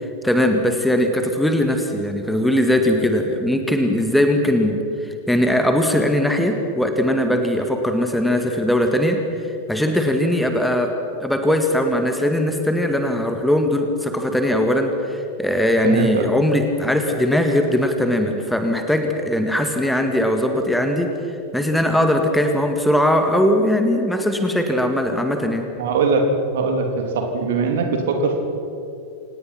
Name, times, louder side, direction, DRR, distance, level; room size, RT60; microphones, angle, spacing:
voice 1, 0.2-9.2 9.7-10.9 11.2-21.1 21.5-25.7, left 1 dB, 5° left, 5 dB, 1.9 m, -20 dB
voice 2, 15.8-16.3 25.8-26.3 26.5-28.4, right 4 dB, 55° right, 4 dB, 3.2 m, -21 dB
27.5 x 18.5 x 5.9 m, 2.7 s
figure-of-eight pair, 90°, 0 cm